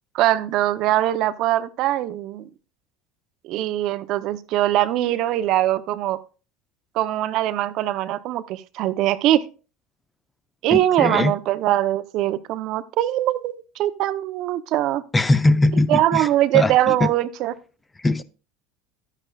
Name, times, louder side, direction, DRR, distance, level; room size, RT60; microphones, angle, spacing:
voice 1, 0.1-2.5 3.4-6.2 6.9-9.4 10.6-15.0 15.9-17.5, right 14 dB, 60° right, 0.6 m, -22 dB
voice 2, 10.7-11.3 15.1-16.3 16.5-17.1 18.0-18.2, left 2 dB, 15° left, 0.5 m, -20 dB
11.0 x 9.1 x 2.3 m
hypercardioid pair, 85°, 0 cm